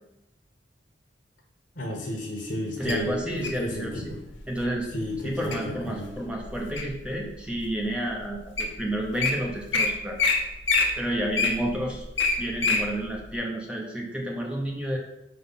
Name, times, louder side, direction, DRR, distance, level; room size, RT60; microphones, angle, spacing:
voice 1, 1.8-4.2 4.9-6.1, left 1 dB, 55° left, -1 dB, 1.1 m, -33 dB
voice 2, 2.8-4.1 4.5-4.9 5.2-10.2 11.0-12.0 12.4-15.0, right 1 dB, 5° right, -1 dB, 0.7 m, -30 dB
Wild animals, 2.9-3.6 4.3-4.6 5.1-5.6 6.1-7.0 7.6-7.7 8.3-8.4 8.6-8.7 9.0-9.3 9.7-9.9 10.2-10.4 10.6-12.8 13.3-13.4, left 4 dB, 80° left, 1.1 m, -24 dB
4.9 x 3.8 x 5.6 m, 0.89 s
head